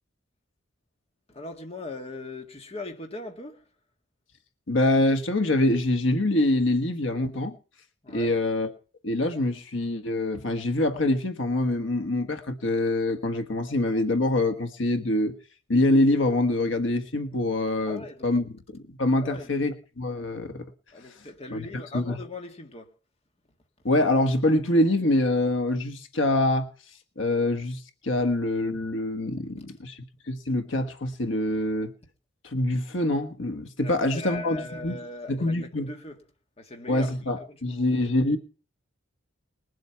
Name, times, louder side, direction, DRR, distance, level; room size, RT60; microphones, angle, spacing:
voice 1, 1.3-3.7 8.0-8.3 17.9-18.3 19.2-19.7 20.9-22.9 29.6-29.7 33.8-36.2 36.6-37.1 37.5-38.1, left 2 dB, 30° left, 1.8 m, -40 dB
voice 2, 4.7-7.6 8.1-8.7 9.0-15.3 15.7-20.6 21.5-21.6 21.9-22.1 23.8-26.7 27.2-30.0 30.3-31.9 32.4-35.0 35.3-35.9 36.9-38.4, left 1 dB, 75° left, 1.5 m, -25 dB
20.5 x 7.9 x 5.8 m
head